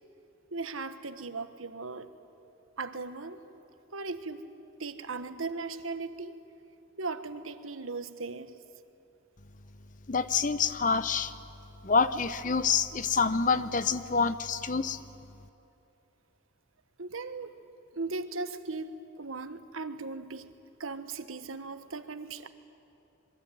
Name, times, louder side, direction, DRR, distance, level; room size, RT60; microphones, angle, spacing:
voice 1, 0.5-2.1 2.8-3.4 3.9-4.5 4.8-6.4 7.0-8.6 17.0-17.6 17.9-20.5 20.8-22.5, right 3 dB, 85° right, 10 dB, 1.4 m, -38 dB
voice 2, 10.1-11.3 11.8-15.0, left 5 dB, 40° left, 13 dB, 0.8 m, -27 dB
27.0 x 22.5 x 9.3 m, 2.8 s
head